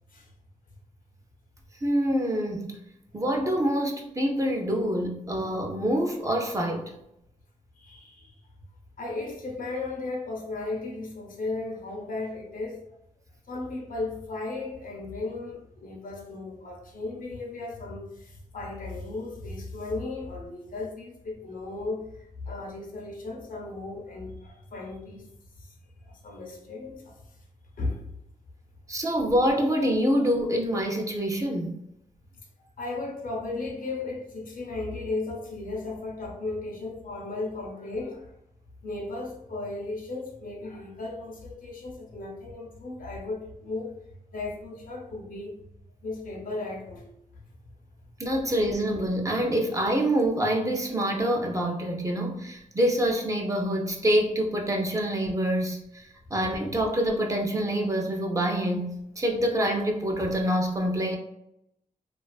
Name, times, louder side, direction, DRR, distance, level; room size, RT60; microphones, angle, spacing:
voice 1, 1.8-2.8 3.1-6.9 28.9-31.8 48.2-61.2, equal, 25° right, 1 dB, 0.4 m, -26 dB
voice 2, 7.8-8.3 9.0-12.8 13.5-25.3 25.6-25.8 26.0-27.2 27.8-28.1 32.8-38.3 38.8-43.9 44.3-45.6 46.0-47.1, left 3 dB, 80° left, 0 dB, 0.6 m, -35 dB
2.4 x 2.3 x 2.2 m, 0.78 s
wide cardioid pair, 100°, 14 cm